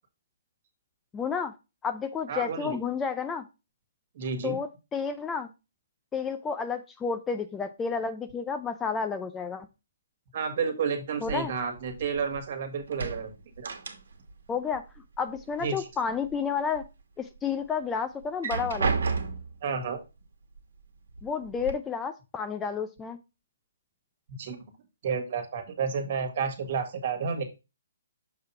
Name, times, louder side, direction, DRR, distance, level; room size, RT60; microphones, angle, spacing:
voice 1, 1.1-1.5 1.8-3.4 4.4-5.5 6.1-9.7 11.2-11.5 14.5-14.8 15.2-16.8 17.2-19.0 21.2-23.2, left 6 dB, 10° left, 8 dB, 0.4 m, -31 dB
voice 2, 2.3-2.8 4.2-4.6 10.3-13.3 13.6-13.7 15.6-15.9 19.6-20.0 24.4-24.6 25.0-27.4, right 6 dB, 50° right, 6 dB, 1.7 m, -31 dB
sound 1, 11.2-12.5 12.8-14.4 14.7-15.7 16.1-16.9 17.4-17.5 18.2-19.6 20.6-20.7 21.1-21.7, right 4 dB, 75° right, 1.3 m, -32 dB
6.7 x 2.8 x 5.6 m, 0.27 s
hypercardioid pair, 150°, 0 cm